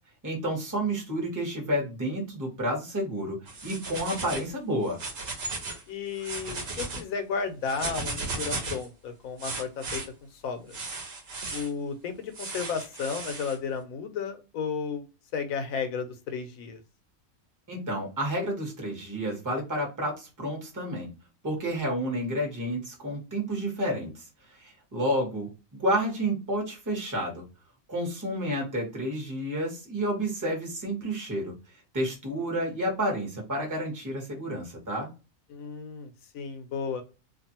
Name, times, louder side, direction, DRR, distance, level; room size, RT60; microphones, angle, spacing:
voice 1, 0.2-3.4 3.6-5.0 17.7-21.1 21.4-24.2 24.5-27.4 27.9-31.5 31.9-35.1, equal, 15° right, 0 dB, 0.8 m, -30 dB
sound 1, 3.5-4.5 4.9-5.8 6.1-7.0 7.6-8.9 9.4-10.1 10.7-11.7 12.3-13.6, right 3 dB, 55° right, 0.9 m, -35 dB
voice 2, 5.9-10.0 10.4-10.8 11.5-15.0 15.3-16.8 35.5-37.0, left 6 dB, 85° left, 8 dB, 1.1 m, -33 dB
2.5 x 2.4 x 2.7 m, 0.31 s
omnidirectional pair, 1.4 m